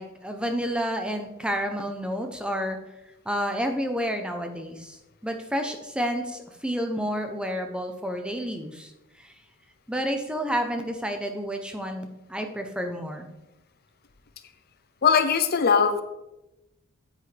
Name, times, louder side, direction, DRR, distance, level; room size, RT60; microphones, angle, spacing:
voice 1, 0.0-2.8 3.2-5.0 5.2-8.9 9.2-9.3 9.9-13.3, equal, 5° right, 5 dB, 0.8 m, -30 dB
voice 2, 15.0-16.0, left 6 dB, 50° left, 9 dB, 0.6 m, -20 dB
9.5 x 8.2 x 3.4 m, 0.95 s
head